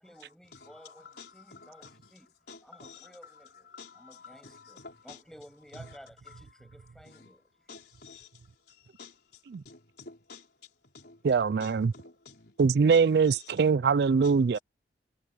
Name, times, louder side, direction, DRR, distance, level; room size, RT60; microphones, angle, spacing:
voice 1, 0.0-2.3 2.6-7.5, equal, ahead, 7.7 m, -54 dB
voice 2, 1.2-2.1 2.5-3.1 3.7-5.2 7.1-7.3 7.7-8.3 8.7-9.2 9.6-10.5 10.9-11.2 11.6-12.5 12.9-13.4 14.2-14.3, left 4 dB, 60° left, 4.6 m, -50 dB
voice 3, 11.2-11.9 12.6-14.6, right 5 dB, 60° right, 0.3 m, -23 dB
head